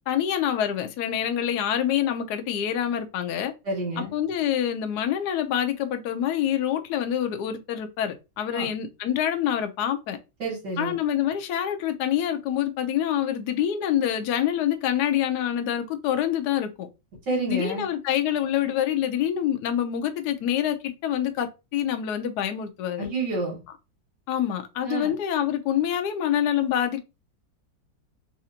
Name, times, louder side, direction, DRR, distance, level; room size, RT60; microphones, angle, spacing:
voice 1, 0.1-3.5 4.0-10.2 10.8-16.9 17.5-23.1 24.3-27.0, left 10 dB, 70° left, 1.1 m, -26 dB
voice 2, 3.6-4.1 8.5-8.7 10.4-11.0 17.3-17.9 23.0-23.6 24.8-25.1, right 2 dB, 65° right, 2.2 m, -29 dB
4.1 x 2.6 x 2.8 m
omnidirectional pair, 2.1 m